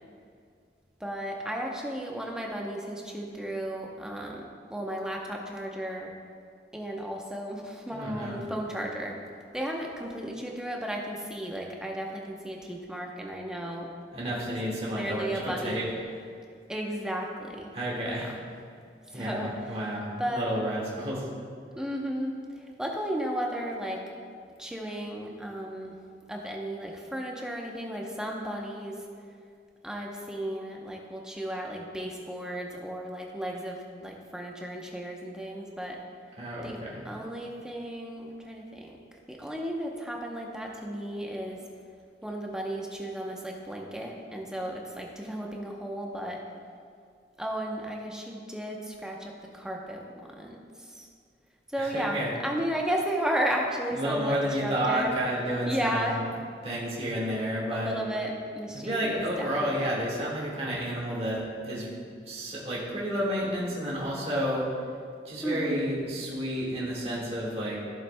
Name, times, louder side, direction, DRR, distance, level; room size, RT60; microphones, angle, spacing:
voice 1, 1.0-4.4 4.7-6.1 6.7-9.2 9.5-13.9 14.2-14.5 14.9-15.8 16.7-17.7 18.2-18.4 19.1-19.5 20.2-20.5 21.8-24.0 24.6-26.0 26.3-29.0 29.8-36.0 36.6-36.8 37.0-39.0 39.3-41.6 42.2-46.4 47.4-51.1 51.7-55.2 55.7-56.2 57.7-60.0 65.4-65.8, equal, 5° right, -1 dB, 0.7 m, -34 dB
voice 2, 7.9-8.5 14.1-15.9 17.7-18.3 19.1-21.3 36.4-37.1 51.8-52.3 53.9-56.2 56.6-58.0 58.7-61.9 62.2-64.7 65.3-67.8, equal, 35° right, -5 dB, 1.7 m, -31 dB
14.5 x 7.2 x 2.2 m, 2.2 s
head